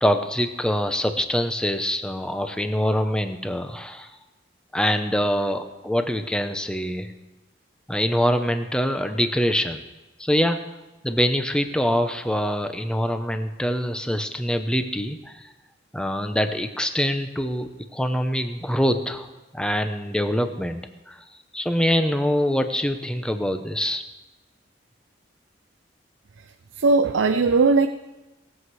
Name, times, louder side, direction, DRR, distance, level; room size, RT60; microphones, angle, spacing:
voice 1, 0.0-4.1 4.7-7.1 7.9-9.8 10.2-10.6 11.0-15.5 15.9-19.3 19.5-21.2 21.5-24.0, equal, 5° left, 7 dB, 0.7 m, -24 dB
voice 2, 26.8-27.9, right 4 dB, 90° right, 8 dB, 0.5 m, -18 dB
19.5 x 7.9 x 4.8 m, 1.1 s
head